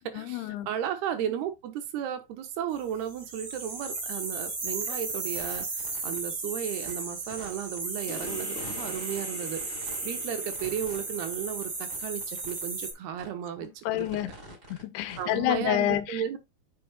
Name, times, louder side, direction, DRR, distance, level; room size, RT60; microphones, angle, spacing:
voice 1, 0.1-0.7 13.6-14.3 14.7-16.4, left 13 dB, 80° left, 2.7 m, -29 dB
voice 2, 0.7-5.6 6.0-9.6 10.1-11.7 12.0-12.2 12.5-13.7 13.9-14.1 15.2-16.4, right 10 dB, 75° right, 3.1 m, -34 dB
sound 1, 3.1-12.9, right 3 dB, 40° right, 3.9 m, -35 dB
sound 2, 4.7-4.8 5.1-6.2 6.8-6.9 7.3-9.2 9.6-10.0 10.5-11.0 11.3-11.4 11.6-11.7 11.9-12.6 13.2-13.3 13.6-15.4, equal, 15° right, 4.2 m, -47 dB
sound 3, 8.1-13.1, left 7 dB, 50° left, 2.4 m, -46 dB
7.9 x 7.4 x 2.3 m
omnidirectional pair, 4.7 m